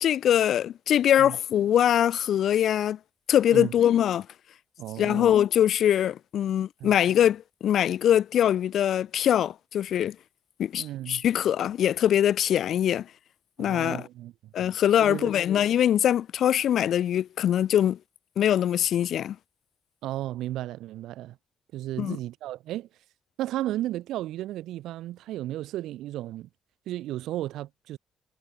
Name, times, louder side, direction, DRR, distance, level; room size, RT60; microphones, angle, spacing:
voice 1, 0.0-3.0 3.3-4.3 5.0-10.2 10.6-13.1 13.6-14.1 14.5-18.0 18.4-19.4 22.0-22.2, left 10 dB, 70° left, 0.5 m, -23 dB
voice 2, 4.8-5.3 6.8-6.9 10.8-11.2 13.6-14.5 15.0-15.3 20.0-21.4 21.7-22.9 23.4-26.5 26.9-28.0, right 14 dB, 85° right, 1.5 m, -34 dB
cardioid pair, 90°, 0 cm